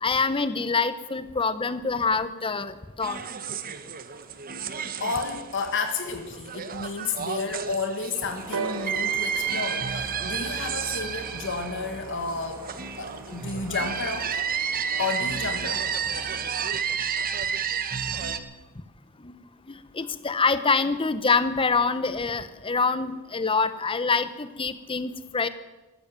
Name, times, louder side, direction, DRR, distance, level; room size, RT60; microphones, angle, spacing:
voice 1, 0.0-3.2 19.2-19.4 19.7-25.5, left 4 dB, 25° left, 13 dB, 0.8 m, -25 dB
sound 1, 3.0-18.4, right 7 dB, 40° right, 0.9 m, -31 dB
voice 2, 5.0-12.7 12.9-14.4 15.0-15.9, left 4 dB, 60° left, 6 dB, 1.6 m, -31 dB
sound 2, 8.2-16.7, right 2 dB, 15° right, 1.4 m, -47 dB
sound 3, 8.5-12.4 13.3-13.4, right 4 dB, 75° right, 1.6 m, -38 dB
14.5 x 13.0 x 7.5 m, 1.1 s
head